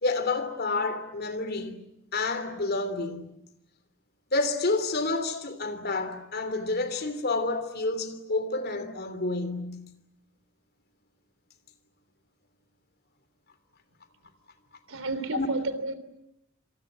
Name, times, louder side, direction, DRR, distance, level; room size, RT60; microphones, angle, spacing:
voice 1, 0.0-1.8 2.1-3.3 4.3-9.9 15.2-15.5, left 3 dB, 50° left, 3.1 m, -29 dB
voice 2, 14.9-15.9, right 2 dB, 85° right, 3.3 m, -31 dB
28.0 x 26.5 x 7.6 m
head